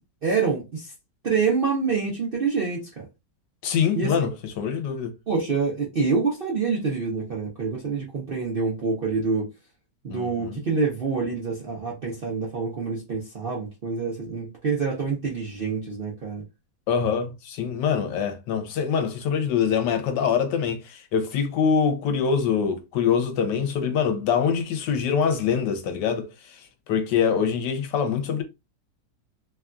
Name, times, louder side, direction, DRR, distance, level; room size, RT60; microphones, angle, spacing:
voice 1, 0.2-0.9 1.2-3.1 3.9-4.3 5.3-9.5 10.0-16.4, right 4 dB, 55° right, 0.6 m, -26 dB
voice 2, 3.6-5.1 10.1-10.6 16.9-26.6 26.9-28.4, left 7 dB, 80° left, 1.3 m, -24 dB
3.3 x 2.3 x 2.4 m
omnidirectional pair, 1.9 m